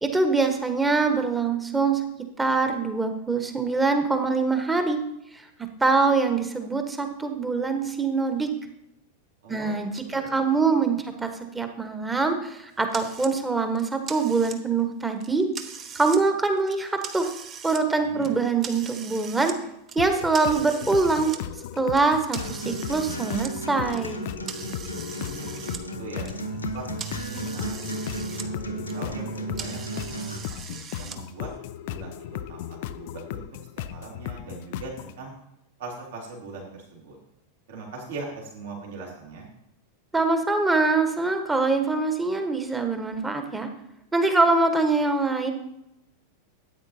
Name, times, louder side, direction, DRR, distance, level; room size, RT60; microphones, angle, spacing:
voice 1, 0.0-2.0 2.4-5.0 5.3-5.5 5.8-8.5 9.5-15.5 15.9-17.3 17.6-19.5 19.9-21.3 21.8-24.2 40.1-43.7 44.1-45.5, right 3 dB, 10° right, 6 dB, 1.3 m, -24 dB
voice 2, 9.4-10.4 18.0-18.3 25.2-26.3 26.7-26.9 27.2-28.1 28.5-31.5 31.8-33.4 33.9-35.3 35.8-37.2 37.7-39.5, right 3 dB, 60° right, -2 dB, 2.8 m, -41 dB
sound 1, 12.9-13.3 13.7-14.8 15.2-16.2 16.6-17.8 18.2-19.6 19.9-21.4 21.9-25.8 26.1-28.5 28.8-31.2, right 6 dB, 30° right, 0.9 m, -40 dB
sound 2, 20.0-35.2, left 12 dB, 50° left, 0.4 m, -37 dB
Acoustic guitar, 22.4-30.4, right 2 dB, 80° left, 1.1 m, -35 dB
13.0 x 8.9 x 2.8 m, 0.83 s
figure-of-eight pair, 90°, 0 cm